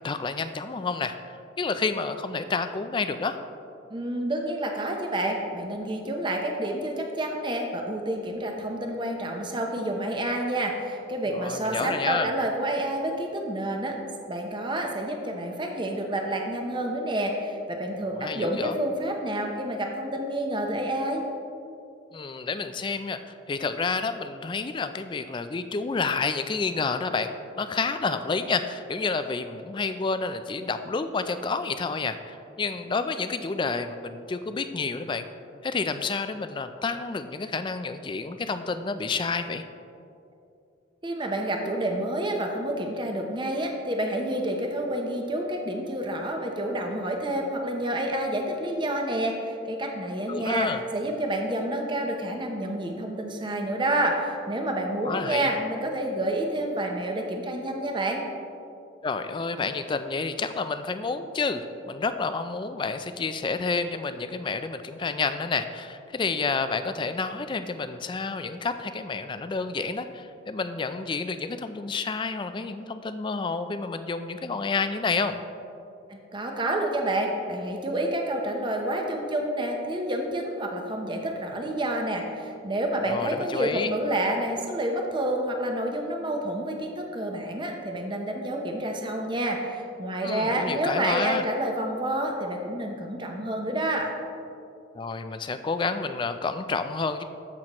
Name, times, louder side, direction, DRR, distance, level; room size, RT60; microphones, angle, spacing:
voice 1, 0.0-3.4 11.3-12.3 18.1-18.8 22.1-35.3 35.6-39.6 50.3-50.8 55.0-55.5 59.0-75.4 83.0-83.9 90.2-91.5 94.9-97.2, left 4 dB, 25° left, 10 dB, 0.3 m, -29 dB
voice 2, 3.9-14.0 14.3-21.2 41.0-58.2 76.1-94.1, right 1 dB, 25° right, 2 dB, 0.7 m, -29 dB
13.5 x 5.9 x 3.0 m, 2.6 s
head